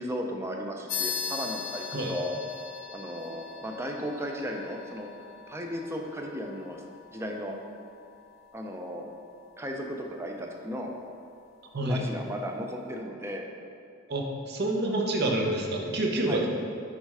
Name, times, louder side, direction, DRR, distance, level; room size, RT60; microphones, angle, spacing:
voice 1, 0.0-2.3 2.9-5.1 5.5-6.8 7.1-7.5 8.5-9.1 9.6-10.9 11.8-13.4 16.3-16.5, equal, 15° right, 2 dB, 0.4 m, -35 dB
sound 1, 0.9-10.9, left 7 dB, 80° left, 0.6 m, -40 dB
voice 2, 14.1-16.5, right 1 dB, 55° right, 0 dB, 0.7 m, -28 dB
6.5 x 3.2 x 4.8 m, 2.5 s
head